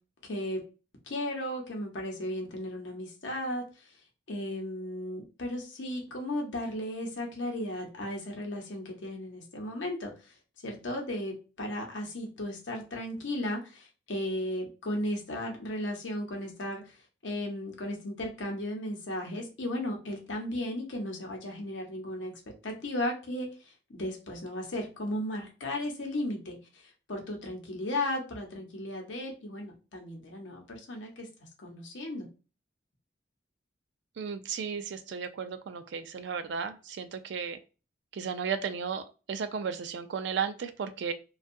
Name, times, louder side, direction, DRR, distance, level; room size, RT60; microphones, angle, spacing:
voice 1, 0.2-0.6 1.1-3.6 4.3-10.3 10.6-17.0 17.2-22.3 22.6-32.3, left 1 dB, 75° left, 1 dB, 0.8 m, -35 dB
voice 2, 34.2-37.6 38.1-41.1, right 6 dB, 65° right, 10 dB, 0.4 m, -34 dB
2.6 x 2.3 x 2.5 m, 0.33 s
head